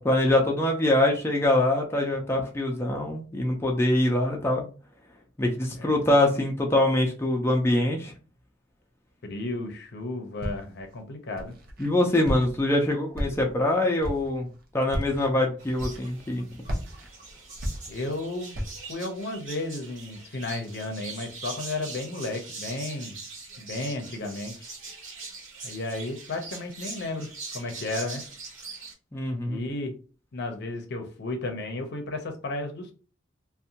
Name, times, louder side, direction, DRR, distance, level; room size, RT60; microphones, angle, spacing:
voice 1, 0.0-4.7 5.4-8.1 11.8-14.5 14.7-16.4 29.1-29.6, left 1 dB, 15° left, 0 dB, 0.4 m, -24 dB
voice 2, 9.2-11.6 17.9-18.6 18.9-23.2 23.6-24.5 25.6-28.2 29.5-29.9 30.3-32.9, left 2 dB, 60° left, 4 dB, 0.6 m, -33 dB
Walk footsteps, 10.4-10.9 11.4-11.9 12.2-12.7 13.1-13.6 14.0-14.4 14.9-15.3 15.8-16.3 16.6-18.2 18.5-18.9, equal, 50° right, 0.6 m, -33 dB
sound 1, 15.6-28.9, right 4 dB, 85° right, 1.0 m, -42 dB
2.6 x 2.2 x 2.7 m, 0.37 s
head